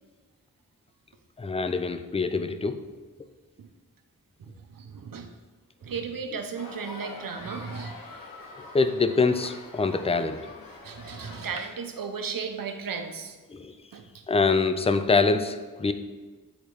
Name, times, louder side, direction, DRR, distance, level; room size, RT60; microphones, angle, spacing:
voice 1, 1.4-2.8 8.7-10.4 13.5-13.7 14.3-15.9, left 4 dB, 20° left, 9 dB, 0.4 m, -24 dB
voice 2, 4.4-5.3 5.8-8.0 10.8-13.4 13.9-14.2, right 5 dB, 85° right, 6 dB, 0.7 m, -35 dB
sound 1, 6.6-11.6, left 2 dB, 85° left, 0.8 m, -44 dB
8.3 x 3.9 x 3.1 m, 1.3 s
cardioid pair, 50°, 33 cm